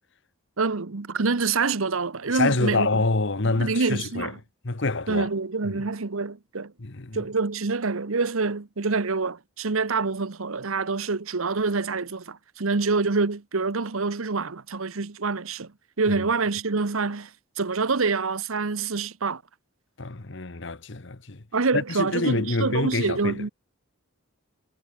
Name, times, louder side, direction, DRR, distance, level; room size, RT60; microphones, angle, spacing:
voice 1, 0.6-2.9 3.4-4.4 5.1-6.7 7.1-15.7 16.0-17.3 17.6-19.4 21.5-23.5, right 4 dB, 75° right, 1.0 m, -26 dB
voice 2, 2.3-4.3 4.6-5.3 5.6-5.9 6.8-7.3 16.2-16.3 20.0-21.4 21.7-23.4, left 3 dB, 55° left, 1.2 m, -27 dB
head